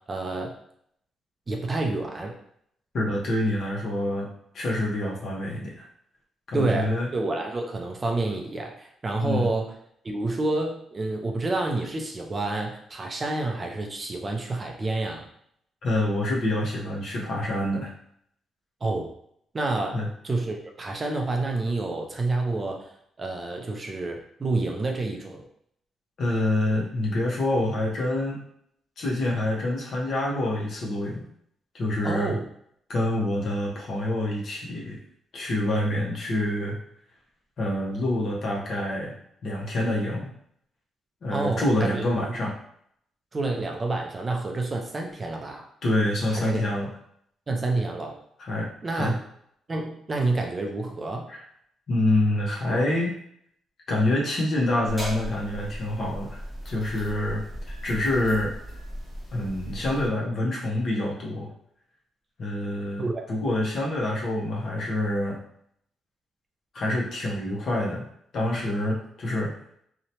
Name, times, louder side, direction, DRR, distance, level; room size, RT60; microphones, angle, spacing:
voice 1, 0.1-0.5 1.5-2.3 6.5-9.7 10.0-15.3 18.8-19.1 19.5-22.9 23.2-25.4 32.0-32.4 41.3-42.1 43.3-45.7 46.3-46.6 47.5-48.2 48.8-49.2 49.7-51.3 63.0-63.2, right 2 dB, 25° right, 2 dB, 0.4 m, -28 dB
voice 2, 2.9-4.3 4.5-5.9 6.5-7.1 9.2-9.5 15.8-17.9 19.9-20.1 26.2-28.4 29.0-31.3 31.7-32.3 32.9-35.0 35.3-36.8 37.6-39.1 39.4-40.3 41.2-42.6 45.8-46.9 48.4-49.1 51.3-51.4 51.9-53.1 53.9-58.5 59.3-61.5 62.4-65.4 66.7-68.1 68.3-69.5, left 1 dB, 50° left, -3 dB, 0.7 m, -26 dB
sound 1, 54.9-60.1, equal, 5° right, 0.7 m, -37 dB
2.8 x 2.1 x 2.7 m, 0.68 s
cardioid pair, 140°, 0 cm